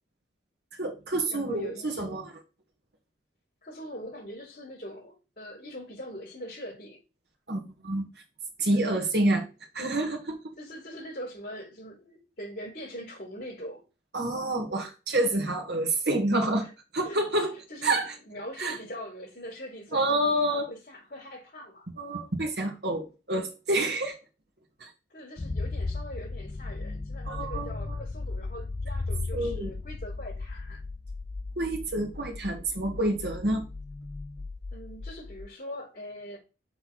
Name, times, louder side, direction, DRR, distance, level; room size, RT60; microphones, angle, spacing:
voice 1, 0.8-2.4 7.5-8.0 8.6-9.5 9.7-10.5 14.1-16.7 16.9-17.5 17.8-18.1 18.6-18.8 19.9-20.7 22.0-24.2 24.8-24.9 27.3-28.0 29.3-29.7 31.6-33.6, right 1 dB, 55° right, 1.8 m, -28 dB
voice 2, 1.3-2.2 3.6-7.0 10.6-13.8 16.6-16.7 17.0-21.9 25.1-30.8 34.7-36.4, equal, 45° left, 4.1 m, -42 dB
sound 1, 25.4-35.5, left 3 dB, 25° left, 0.3 m, -36 dB
6.9 x 4.0 x 3.9 m
head